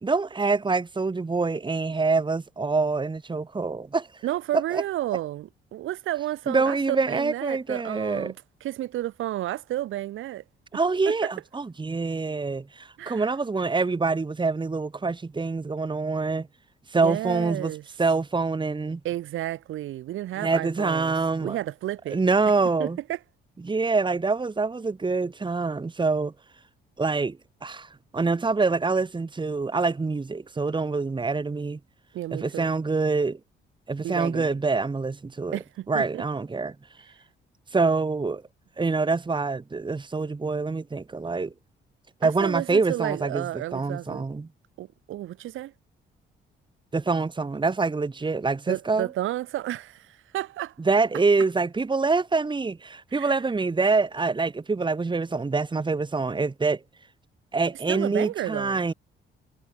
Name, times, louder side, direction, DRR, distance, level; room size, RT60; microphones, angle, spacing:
voice 1, 0.0-4.1 4.7-4.8 6.5-8.3 10.7-16.5 16.9-17.7 18.0-19.0 20.4-21.6 22.1-23.0 23.6-26.3 27.0-31.8 32.3-33.4 33.9-35.6 35.9-36.7 37.7-38.4 38.8-41.5 42.2-43.4 43.7-44.5 46.9-49.1 50.9-56.8 57.5-58.9, right 4 dB, 25° right, 2.4 m, -25 dB
voice 2, 4.2-8.3 8.6-10.4 11.1-11.3 13.0-13.2 16.9-17.8 19.0-22.2 22.8-23.2 32.1-32.8 34.0-34.5 35.5-36.2 42.2-44.3 44.8-45.7 48.7-50.7 53.1-53.4 57.9-58.8, right 14 dB, 85° right, 6.0 m, -32 dB
cardioid pair, 90°, 20 cm